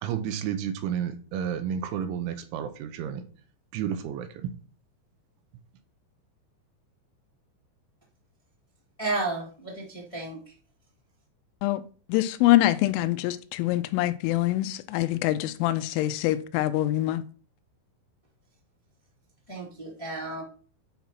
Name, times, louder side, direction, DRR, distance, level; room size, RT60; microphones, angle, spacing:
voice 1, 0.0-3.2 3.7-4.3, right 8 dB, 80° right, 3.2 m, -31 dB
voice 2, 9.0-9.4 10.1-10.4 19.5-20.4, right 2 dB, 25° left, 0.7 m, -31 dB
voice 3, 12.1-17.2, left 15 dB, 85° left, 3.2 m, -24 dB
9.3 x 4.3 x 5.8 m
omnidirectional pair, 5.7 m